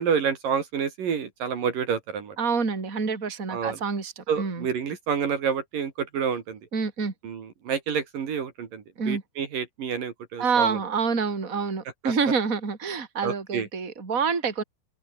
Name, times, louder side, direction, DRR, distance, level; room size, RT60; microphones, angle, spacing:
voice 1, 0.0-2.4 3.5-3.8 4.3-6.6 7.2-10.8 12.0-12.1 13.2-13.7, right 7 dB, 60° right, 4.2 m, -28 dB
voice 2, 2.4-4.7 6.7-7.1 9.0-9.2 10.4-14.6, right 5 dB, 20° right, 3.6 m, -27 dB
open air
omnidirectional pair, 4.5 m